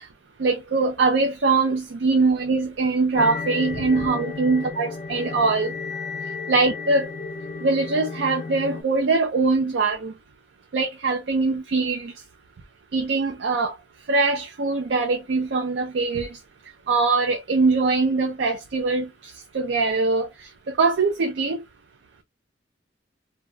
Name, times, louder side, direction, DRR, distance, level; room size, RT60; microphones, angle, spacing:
voice 1, 0.4-5.7 6.5-7.1 7.6-10.1 10.7-12.1 12.9-13.7 14.1-16.4 16.9-21.6, right 3 dB, 70° right, 0.5 m, -22 dB
sound 1, 3.2-8.8, left 4 dB, 45° left, 0.5 m, -33 dB
2.3 x 2.1 x 3.6 m
head